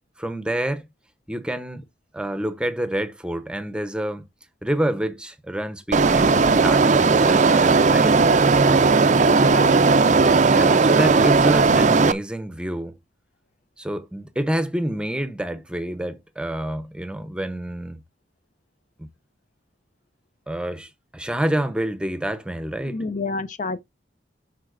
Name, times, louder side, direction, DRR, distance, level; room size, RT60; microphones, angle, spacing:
voice 1, 0.2-0.9 1.3-1.8 2.1-4.3 4.6-8.1 10.2-12.9 13.8-18.0 19.0-19.1 20.5-23.0, right 1 dB, 5° right, 0.7 m, -28 dB
sound 1, 5.9-12.1, right 4 dB, 40° right, 0.5 m, -16 dB
voice 2, 9.3-9.8 22.9-23.8, left 3 dB, 45° left, 0.6 m, -29 dB
11.0 x 4.1 x 2.5 m
head